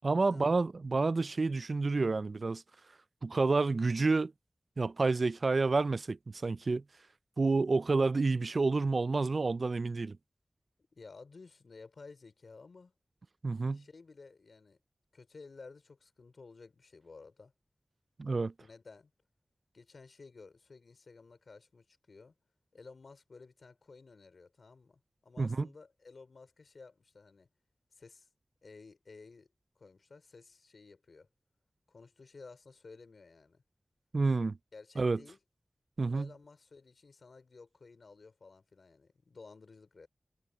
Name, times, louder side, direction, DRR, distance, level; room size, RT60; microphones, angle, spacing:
voice 1, 0.0-2.6 3.2-4.3 4.8-6.8 7.4-10.2 13.4-13.8 18.2-18.5 25.4-25.7 34.1-34.6 35.0-35.2 36.0-36.3, right 3 dB, 65° right, 0.3 m, -29 dB
voice 2, 10.9-12.9 13.7-14.8 15.1-17.5 18.6-19.1 19.7-22.3 22.7-27.5 27.9-28.3 28.6-29.5 29.8-31.3 31.9-33.6 34.7-35.4 36.0-40.1, left 4 dB, 85° left, 3.5 m, -54 dB
wide cardioid pair, 60°, 0 cm